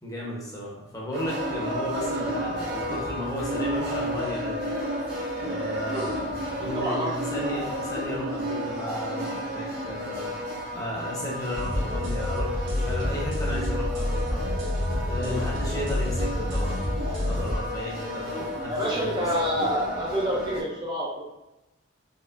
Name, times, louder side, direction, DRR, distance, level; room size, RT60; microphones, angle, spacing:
voice 1, 0.0-4.6 5.5-6.3 6.6-10.3 10.7-14.5 15.1-16.9 17.2-19.2 19.5-19.6, equal, 15° left, -4 dB, 0.8 m, -34 dB
sound 1, 1.1-20.6, equal, 50° right, 1.2 m, -32 dB
voice 2, 6.7-7.1 15.2-15.4 18.7-21.2, right 1 dB, 25° right, -4 dB, 0.5 m, -28 dB
sound 2, 11.5-17.6, left 1 dB, 75° right, 1.2 m, -28 dB
4.3 x 3.1 x 2.5 m, 0.94 s
head